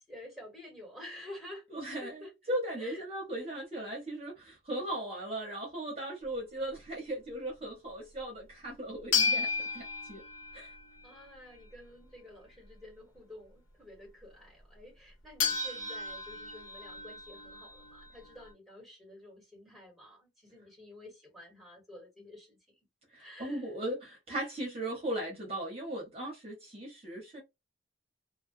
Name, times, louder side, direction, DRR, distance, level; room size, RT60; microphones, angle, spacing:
voice 1, 0.1-1.7 2.0-2.3 2.8-3.0 11.0-22.6 23.2-23.7, left 1 dB, ahead, 1.3 m, -50 dB
voice 2, 1.7-10.2 10.5-10.7 23.1-27.4, right 1 dB, 30° right, 0.9 m, -38 dB
sound 1, 9.1-11.1 15.4-18.5, left 5 dB, 75° left, 0.9 m, -33 dB
2.3 x 2.2 x 2.6 m
head